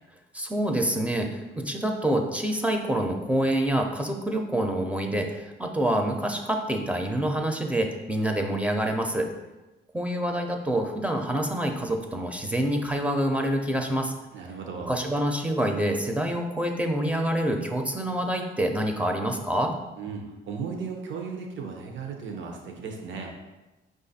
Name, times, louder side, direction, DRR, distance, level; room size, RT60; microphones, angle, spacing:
voice 1, 0.3-9.3 9.9-14.1 14.9-19.7, right 1 dB, 5° right, 3 dB, 0.5 m, -27 dB
voice 2, 14.3-14.9 20.0-23.3, right 5 dB, 70° right, 2 dB, 0.7 m, -36 dB
4.9 x 2.5 x 4.0 m, 1.1 s
cardioid pair, 90°, 20 cm